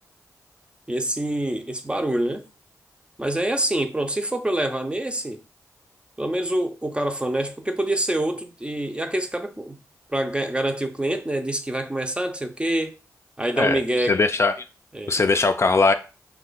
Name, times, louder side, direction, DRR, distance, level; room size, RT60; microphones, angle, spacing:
voice 1, 0.9-2.4 3.2-5.4 6.2-9.8 10.1-13.0 13.4-14.2 14.9-15.2, right 1 dB, 15° right, 0.6 m, -26 dB
voice 2, 13.6-14.5 15.1-15.9, left 3 dB, 40° left, 0.4 m, -20 dB
2.8 x 2.2 x 4.0 m
supercardioid pair, 40°, 7 cm